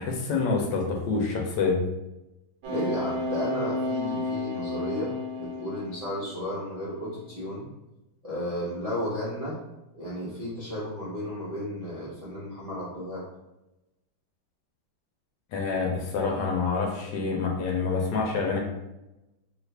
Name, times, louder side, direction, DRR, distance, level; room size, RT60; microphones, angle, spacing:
voice 1, 0.0-1.8 15.5-18.6, left 4 dB, 75° left, 0 dB, 1.2 m, -27 dB
sound 1, 2.6-6.4 6.9-7.2, left 2 dB, 80° right, 1.3 m, -32 dB
voice 2, 2.7-7.7 8.2-9.6 9.9-13.2, equal, 65° right, -10 dB, 0.3 m, -33 dB
3.1 x 2.4 x 3.3 m, 0.96 s
omnidirectional pair, 2.1 m